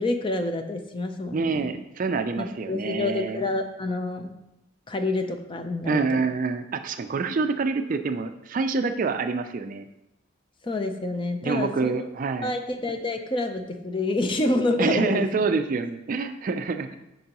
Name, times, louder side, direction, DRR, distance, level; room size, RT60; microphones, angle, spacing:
voice 1, 0.0-1.8 2.4-4.3 4.9-6.2 10.6-12.1 12.4-15.3, left 2 dB, 25° left, 6 dB, 0.5 m, -28 dB
voice 2, 1.3-3.4 5.8-9.9 11.4-12.5 14.8-17.0, right 4 dB, 45° right, 9 dB, 0.4 m, -26 dB
9.0 x 5.3 x 2.9 m, 0.93 s
head